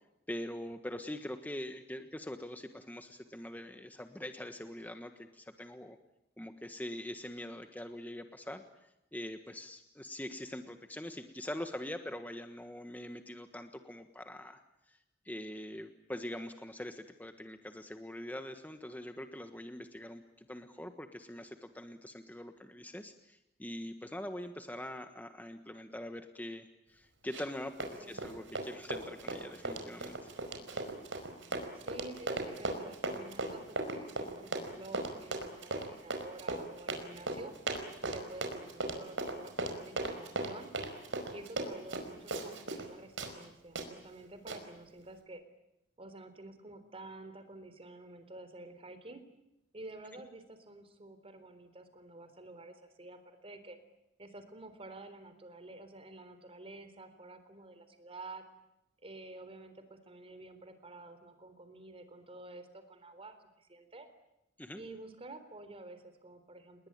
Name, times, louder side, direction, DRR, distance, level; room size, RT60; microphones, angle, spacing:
voice 1, 0.3-6.0 6.4-14.6 14.9-15.0 15.2-30.3 64.6-64.8, left 1 dB, 10° left, 7 dB, 1.4 m, -43 dB
Run, 27.3-27.6 27.8-42.9 43.2-43.3 43.8-43.9 44.5-44.6, right 2 dB, 85° right, 5.0 m, -37 dB
voice 2, 27.9-28.4 31.7-37.5 38.0-40.7 41.3-45.4 46.0-49.2 49.7-53.8 54.2-58.4 59.0-64.1 64.7-66.9, right 2 dB, 30° right, 10 dB, 3.9 m, -50 dB
30.0 x 20.5 x 8.9 m, 0.86 s
head